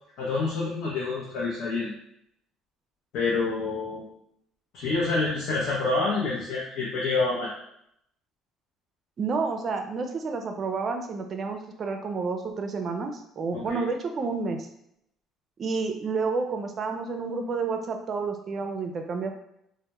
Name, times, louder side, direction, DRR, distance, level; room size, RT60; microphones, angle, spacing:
voice 1, 0.2-1.9 3.1-4.1 4.7-7.5 13.5-13.8, left 3 dB, 75° left, -6 dB, 0.6 m, -27 dB
voice 2, 9.2-14.7 15.6-19.3, right 4 dB, 45° right, 5 dB, 0.4 m, -30 dB
2.1 x 2.1 x 2.9 m, 0.75 s
supercardioid pair, 85°, 0 cm